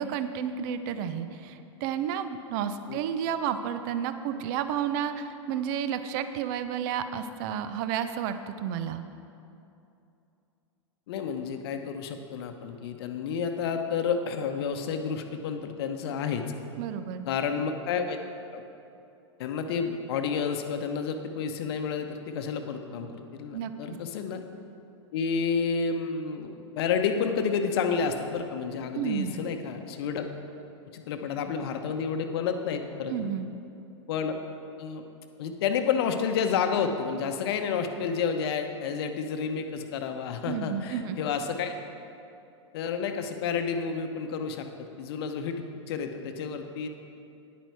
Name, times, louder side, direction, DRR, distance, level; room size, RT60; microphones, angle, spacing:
voice 1, 0.0-9.0 16.8-17.3 23.5-23.7 28.9-29.4 33.1-33.5 40.5-41.2, right 8 dB, 45° right, 10 dB, 0.6 m, -31 dB
voice 2, 11.1-16.5 17.2-18.2 18.5-18.6 19.4-24.4 25.1-30.3 30.9-33.3 34.1-34.3 34.8-35.0 35.4-41.7 42.7-46.9, left 6 dB, 55° left, 6 dB, 0.8 m, -30 dB
10.5 x 9.0 x 4.7 m, 2.7 s
figure-of-eight pair, 95°, 16 cm